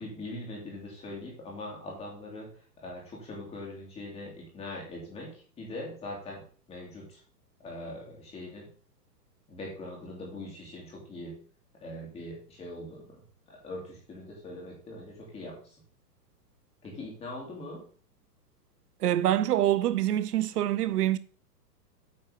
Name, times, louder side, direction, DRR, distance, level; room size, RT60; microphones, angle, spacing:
voice 1, 0.0-2.5 2.8-6.4 6.7-7.2 7.6-8.7 9.5-11.4 11.7-13.2 13.5-15.8 16.8-17.8, left 1 dB, 10° left, 2.5 m, -41 dB
voice 2, 19.0-21.2, right 12 dB, 70° right, 0.6 m, -25 dB
8.7 x 4.3 x 4.9 m
hypercardioid pair, 155°, 49 cm